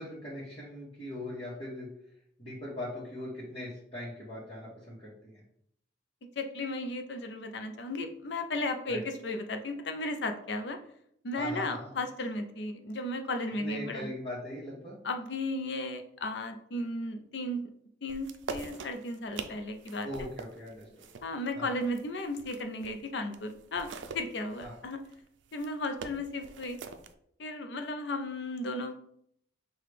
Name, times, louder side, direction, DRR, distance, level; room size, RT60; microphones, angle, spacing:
voice 1, 0.0-1.9 2.4-5.4 8.9-9.0 11.4-11.9 13.6-15.0 20.0-21.0 21.5-21.7 24.6-24.7, left 1 dB, 30° left, -9 dB, 1.2 m, -40 dB
voice 2, 6.4-10.8 11.2-14.1 15.0-17.6 18.0-20.1 21.2-23.9 24.1-25.0 25.5-26.8 27.4-29.0, left 2 dB, 70° left, 6 dB, 0.6 m, -35 dB
sound 1, 18.1-23.0 23.3-27.1, right 5 dB, 85° right, 0.4 m, -44 dB
5.7 x 2.3 x 3.3 m, 0.70 s
head